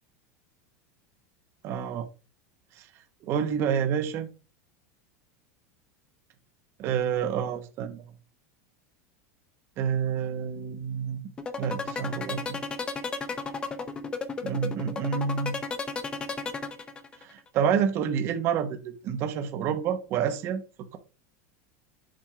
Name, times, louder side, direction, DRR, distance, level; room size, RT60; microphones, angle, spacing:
voice 1, 1.6-2.1 2.8-2.9 3.2-4.3 6.8-8.1 9.8-11.2 11.6-12.6 14.4-15.5 17.2-20.6, right 7 dB, 30° right, 0.9 m, -28 dB
sound 1, 11.4-17.3, left 5 dB, 10° left, 0.6 m, -33 dB
7.5 x 3.6 x 5.7 m
supercardioid pair, 175°, 8 cm